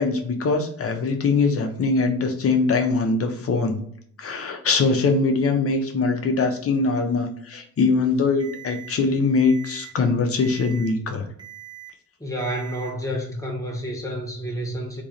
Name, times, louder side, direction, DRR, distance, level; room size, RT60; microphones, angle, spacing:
voice 1, 0.0-3.8 4.2-11.3, left 4 dB, 50° left, 5 dB, 1.0 m, -22 dB
Alarm, 8.4-8.9 9.4-9.9 10.4-10.9 11.4-11.9 12.4-12.9, right 13 dB, 15° right, 1.3 m, -42 dB
voice 2, 12.2-15.0, equal, 10° left, -1 dB, 1.7 m, -29 dB
3.5 x 3.0 x 4.1 m, 0.62 s
cardioid pair, 90°, 30 cm